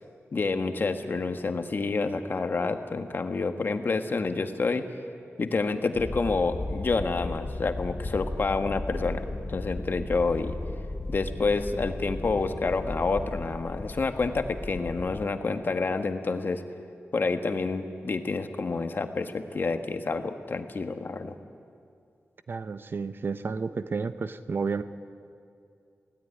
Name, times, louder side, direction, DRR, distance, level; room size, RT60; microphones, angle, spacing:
voice 1, 0.3-4.8 5.4-10.6 11.1-16.6 17.1-21.4, left 4 dB, 45° left, 7 dB, 1.2 m, -28 dB
sound 1, 5.9-15.3, left 2 dB, 25° left, 0.9 m, -35 dB
voice 2, 22.5-24.8, right 4 dB, 50° right, 12 dB, 0.7 m, -31 dB
23.0 x 16.5 x 9.5 m, 2.4 s
wide cardioid pair, 145°, 5 cm